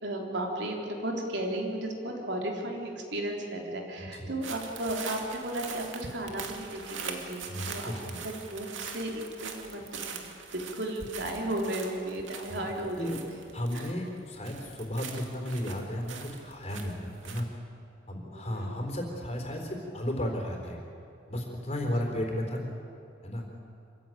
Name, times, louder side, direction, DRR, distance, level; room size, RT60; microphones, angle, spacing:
voice 1, 0.0-13.2 13.7-13.9 18.2-18.7 21.8-22.2, right 1 dB, 65° right, 0 dB, 3.6 m, -35 dB
voice 2, 4.0-4.3 7.5-8.2 12.4-12.7 13.0-13.2 13.5-17.5 18.1-20.8 21.3-22.6 23.2-23.5, equal, 35° left, 1 dB, 4.0 m, -34 dB
sound 1, 4.4-14.2 14.4-17.4, right 5 dB, 90° right, 2.4 m, -42 dB
26.5 x 15.5 x 9.2 m, 2.6 s
head